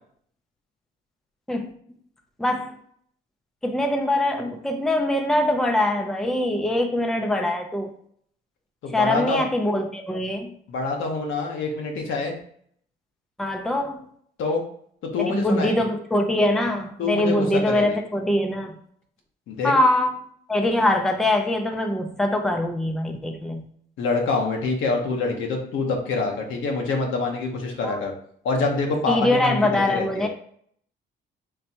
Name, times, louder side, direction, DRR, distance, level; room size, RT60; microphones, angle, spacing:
voice 1, 2.4-2.8 3.6-7.9 8.9-10.5 13.4-14.1 15.2-18.8 19.6-20.2 20.5-23.7 27.8-28.0 29.1-30.3, left 1 dB, ahead, 4 dB, 0.5 m, -23 dB
voice 2, 8.8-9.4 10.7-12.3 14.4-14.6 15.0-15.7 17.0-18.0 19.5-19.7 24.0-28.1 28.4-30.3, left 3 dB, 80° left, 1 dB, 1.0 m, -26 dB
4.4 x 3.2 x 2.8 m, 0.63 s
cardioid pair, 90°, 20 cm